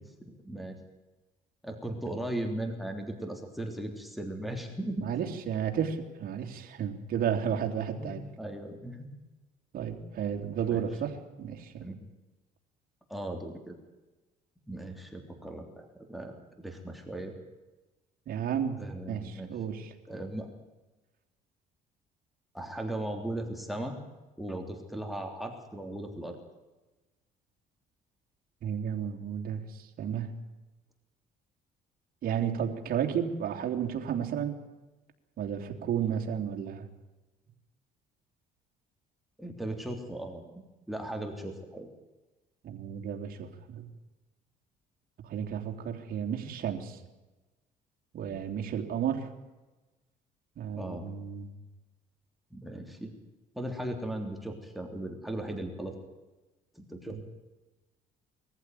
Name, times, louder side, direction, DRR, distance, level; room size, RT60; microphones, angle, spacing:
voice 1, 0.2-0.8 1.6-5.1 8.0-9.1 10.7-10.8 11.8-12.1 13.1-13.7 14.7-17.3 18.8-19.5 20.1-20.5 22.5-23.9 24.4-26.4 39.4-41.9 50.8-51.1 52.5-53.1 53.5-55.9 56.7-57.2, right 1 dB, ahead, 5 dB, 3.3 m, -37 dB
voice 2, 5.0-8.2 9.7-11.8 18.3-18.8 19.1-19.9 28.6-30.4 32.2-34.6 35.4-36.9 42.6-43.9 45.2-47.0 48.1-49.3 50.6-51.5 57.1-57.2, right 8 dB, 60° right, 3 dB, 3.3 m, -32 dB
21.5 x 15.0 x 9.3 m, 1.1 s
cardioid pair, 110°, 17 cm